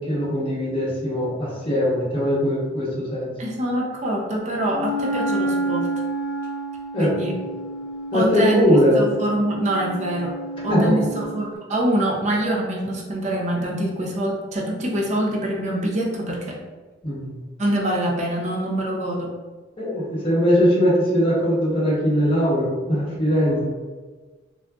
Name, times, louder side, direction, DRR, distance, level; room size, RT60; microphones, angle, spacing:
voice 1, 0.1-3.3 6.9-7.1 8.1-9.0 10.7-11.0 17.0-17.3 19.8-23.6, equal, 30° left, -7 dB, 0.9 m, -20 dB
voice 2, 3.4-5.9 7.0-7.3 8.1-8.6 9.0-16.6 17.6-19.3, right 1 dB, 40° right, -2 dB, 0.5 m, -25 dB
Wind instrument woodwind instrument, 4.7-11.4, right 1 dB, 15° right, 0.9 m, -29 dB
3.7 x 2.3 x 2.3 m, 1.3 s
head